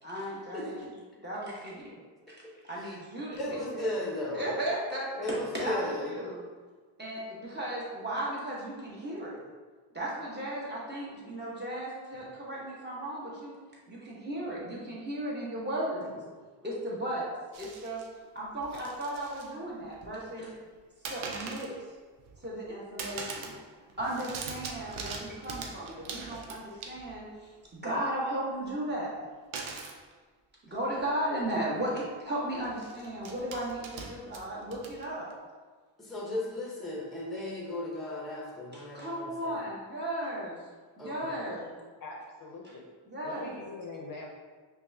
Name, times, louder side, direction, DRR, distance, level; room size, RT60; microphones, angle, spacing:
voice 1, 0.0-0.9 1.2-2.0 2.3-2.4 2.6-3.9 4.3-6.4 7.0-9.5 9.9-13.5 13.9-16.2 16.6-17.3 17.6-18.0 18.3-20.5 21.1-21.7 22.4-23.6 24.0-29.2 30.7-35.3 38.7-40.6 41.0-41.6 43.1-43.6, right 1 dB, 20° right, -6 dB, 0.9 m, -35 dB
voice 2, 3.4-4.5 5.2-6.1 36.0-39.7 41.0-41.3, left 1 dB, ahead, -3 dB, 0.6 m, -35 dB
sound 1, 17.5-18.1 18.6-19.5 19.8-20.4 21.0-21.8 22.2-22.7 23.0-23.6 23.9-27.3 29.5-30.0 31.0-31.1 31.4-31.6 32.6-35.3, right 4 dB, 85° right, 0.6 m, -42 dB
voice 3, 41.1-41.6 42.0-42.9 43.2-44.3, left 3 dB, 45° left, -1 dB, 0.6 m, -43 dB
5.2 x 2.3 x 2.6 m, 1.4 s
wide cardioid pair, 120°, 46 cm